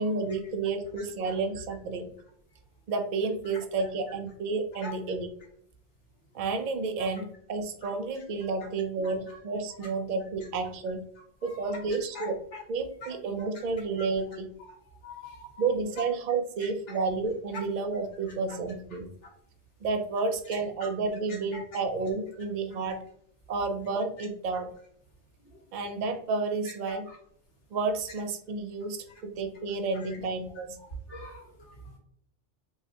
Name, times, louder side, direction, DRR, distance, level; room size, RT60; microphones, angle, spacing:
voice 1, 0.0-2.1 2.9-5.3 6.3-11.0 11.4-12.4 12.7-14.5 15.6-19.1 19.8-23.0 23.5-24.7 25.7-27.1 27.7-30.8, right 4 dB, 55° right, 5 dB, 0.5 m, -31 dB
voice 2, 9.0-9.3 11.4-11.8 12.1-12.3 13.0-13.1 14.6-14.8 15.0-15.7 16.9-17.0 20.8-20.9 21.3-21.8 25.4-25.5 27.1-27.2 30.0-30.1 31.1-32.0, left 2 dB, 85° left, -2 dB, 1.5 m, -44 dB
4.6 x 2.1 x 2.8 m, 0.66 s
omnidirectional pair, 1.2 m